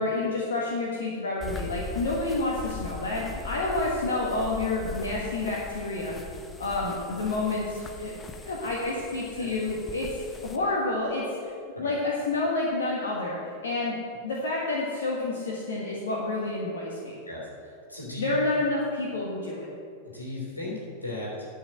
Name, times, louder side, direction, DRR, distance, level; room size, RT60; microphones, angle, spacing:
voice 1, 0.0-6.2 6.6-10.1 10.4-11.5 11.8-13.4 13.6-13.9 14.2-17.1 18.2-19.7, left 2 dB, 65° left, -3 dB, 1.6 m, -29 dB
sound 1, 1.4-10.6, left 4 dB, 15° left, 1.0 m, -40 dB
voice 2, 17.2-18.3 20.0-20.7 21.0-21.5, left 2 dB, 85° left, -3 dB, 3.2 m, -36 dB
11.0 x 6.2 x 7.6 m, 2.5 s
figure-of-eight pair, 90°, 0 cm